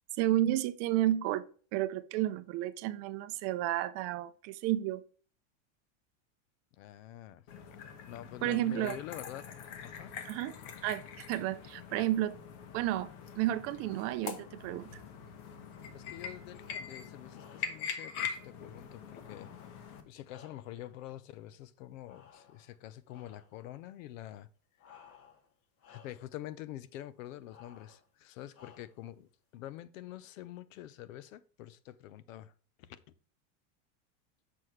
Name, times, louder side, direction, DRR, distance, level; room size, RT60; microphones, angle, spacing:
voice 1, 0.2-5.0 8.4-9.0 10.2-10.5 10.8-12.4 12.7-15.0, right 14 dB, 40° right, 0.5 m, -32 dB
voice 2, 6.8-7.4 8.1-9.4 9.8-10.1 15.9-19.5 20.0-24.5 25.9-32.5 32.8-33.0, left 13 dB, 75° left, 0.8 m, -46 dB
sound 1, 7.5-20.0, left 7 dB, 55° left, 1.3 m, -44 dB
sound 2, 16.4-16.9 17.3-17.9 19.2-20.9 22.0-22.8 23.1-23.6 24.8-25.5 25.8-26.3 27.5-28.1 28.5-29.1, left 7 dB, 35° left, 1.4 m, -59 dB
7.4 x 6.2 x 3.2 m
supercardioid pair, 145°, 39 cm